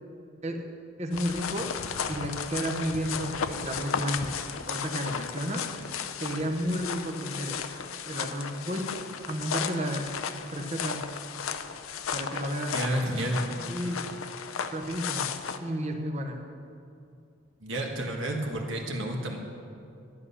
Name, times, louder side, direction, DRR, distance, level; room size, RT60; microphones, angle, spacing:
voice 1, 1.0-1.8 2.1-5.7 6.2-7.6 8.1-9.0 9.3-10.1 10.4-11.1 12.1-12.8 13.1-13.2 13.6-14.2 14.7-15.3 15.6-16.4, equal, 30° right, 4 dB, 0.9 m, -32 dB
sound 1, 1.1-15.6, left 7 dB, 80° left, 0.6 m, -35 dB
voice 2, 12.7-13.5 17.6-19.4, right 1 dB, 65° right, 1 dB, 1.5 m, -30 dB
11.5 x 11.0 x 5.6 m, 2.5 s
head